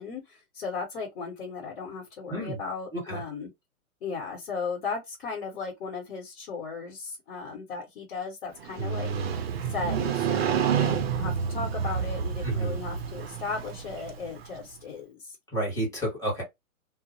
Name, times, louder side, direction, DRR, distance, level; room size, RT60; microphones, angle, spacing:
voice 1, 0.0-3.5 4.0-9.1 9.7-15.4, left 4 dB, 50° left, 1.2 m, -36 dB
voice 2, 2.9-3.2 8.8-9.4 12.4-12.8 15.5-16.4, right 2 dB, 5° left, 1.2 m, -30 dB
Motorcycle, 8.6-14.6, right 7 dB, 45° right, 0.5 m, -29 dB
2.4 x 2.0 x 2.6 m
hypercardioid pair, 140°, 43 cm